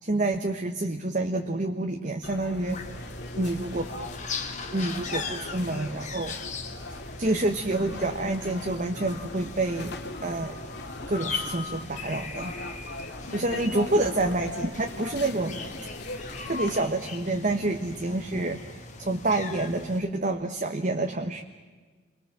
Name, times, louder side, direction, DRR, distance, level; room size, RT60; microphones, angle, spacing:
voice 1, 0.0-2.8 3.4-3.9 4.7-6.3 7.2-9.9 10.2-10.6 11.1-12.5 13.0-15.6 16.5-18.6 19.0-21.4, right 2 dB, 40° right, 4 dB, 1.4 m, -28 dB
sound 1, 2.2-16.8, left 2 dB, 55° left, 2.6 m, -40 dB
sound 2, 2.7-20.0, left 4 dB, 35° left, 2.2 m, -39 dB
30.0 x 23.5 x 7.6 m, 1.4 s
head